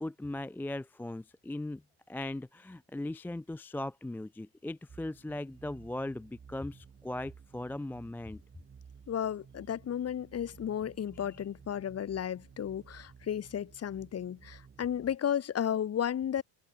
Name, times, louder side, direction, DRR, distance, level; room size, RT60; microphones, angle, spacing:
voice 1, 0.0-1.8 2.1-8.4 11.1-11.4, left 1 dB, 5° left, 0.5 m, -39 dB
sound 1, 4.9-15.2, right 6 dB, 25° right, 3.8 m, -56 dB
voice 2, 9.1-16.4, left 9 dB, 35° left, 1.9 m, -33 dB
open air
cardioid pair, 125°, 45 cm